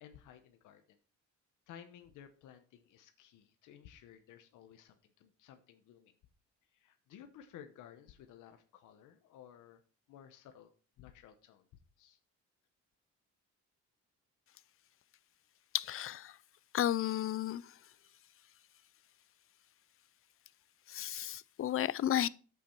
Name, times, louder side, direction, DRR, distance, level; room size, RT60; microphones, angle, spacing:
voice 1, 0.0-1.0 1.7-6.1 6.7-9.8 10.1-10.7 11.0-11.7 12.0-12.2, left 9 dB, 90° left, 1.0 m, -56 dB
voice 2, 15.7-16.4 16.7-17.8 20.9-22.3, left 11 dB, 45° left, 0.5 m, -33 dB
8.4 x 8.0 x 4.5 m
cardioid pair, 90°, 30 cm